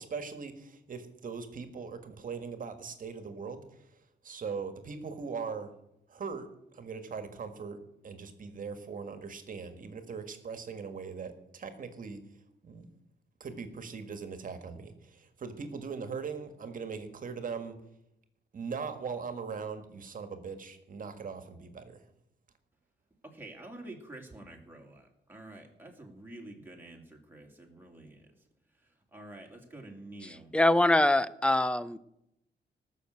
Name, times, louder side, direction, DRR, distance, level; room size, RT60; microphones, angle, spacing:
voice 1, 0.0-3.9 4.2-5.8 6.1-12.2 12.6-12.9 13.4-17.8 18.5-22.0, right 5 dB, 45° right, 8 dB, 1.7 m, -40 dB
voice 2, 23.3-28.3 29.1-30.5, right 1 dB, 10° right, 1 dB, 2.4 m, -48 dB
voice 3, 30.2-32.0, left 1 dB, 5° left, 16 dB, 0.5 m, -24 dB
19.0 x 6.7 x 7.9 m, 0.81 s
wide cardioid pair, 165°, 18 cm